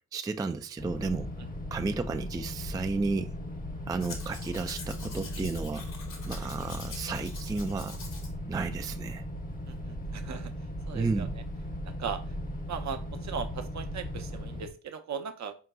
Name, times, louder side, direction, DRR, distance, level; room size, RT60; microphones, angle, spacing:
voice 1, 0.1-1.3 1.7-3.3 3.9-5.8 6.3-8.0 8.5-9.2 10.9-11.3, right 4 dB, 10° right, 8 dB, 0.3 m, -32 dB
sound 1, 0.8-14.7, equal, 25° left, 0.8 m, -38 dB
Domestic sounds home sounds, 4.0-8.3 8.7-8.8, left 4 dB, 60° left, 1.2 m, -45 dB
voice 2, 9.7-10.5 10.9-11.3 11.8-12.2 12.7-15.5, right 6 dB, 50° right, 8 dB, 0.7 m, -38 dB
4.5 x 3.9 x 2.3 m, 0.37 s
hypercardioid pair, 40°, 35 cm